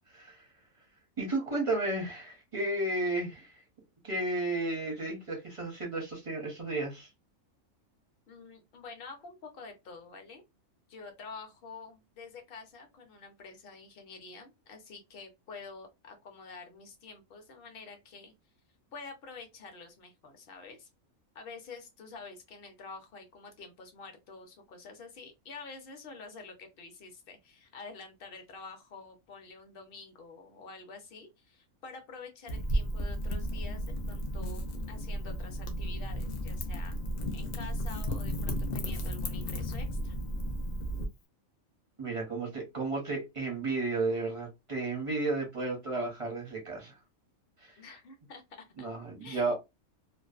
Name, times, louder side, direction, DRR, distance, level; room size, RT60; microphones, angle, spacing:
voice 1, 0.1-0.4 1.2-3.5 4.0-7.1 42.0-46.9 47.6-47.7 48.8-49.5, right 2 dB, 40° right, 0.5 m, -33 dB
voice 2, 8.3-10.4 10.9-18.3 18.9-20.9 21.3-37.0 37.3-40.2 47.8-48.9 49.2-49.5, left 4 dB, 55° left, 0.7 m, -48 dB
Wind / Fire, 32.5-41.1, equal, 70° left, 0.4 m, -34 dB
2.5 x 2.1 x 2.3 m
omnidirectional pair, 1.4 m